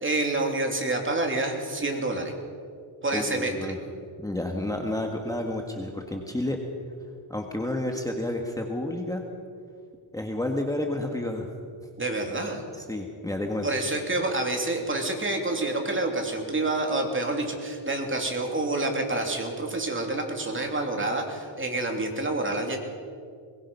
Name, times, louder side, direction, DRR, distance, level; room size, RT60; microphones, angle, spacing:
voice 1, 0.0-2.3 3.0-3.5 12.0-12.6 13.6-22.8, right 2 dB, 25° right, 2 dB, 3.2 m, -28 dB
voice 2, 3.1-3.8 4.2-6.6 7.3-9.2 10.1-11.5 12.7-13.7, left 1 dB, 5° left, 2 dB, 1.7 m, -30 dB
22.0 x 21.0 x 5.6 m, 2.2 s
cardioid pair, 110°, 47 cm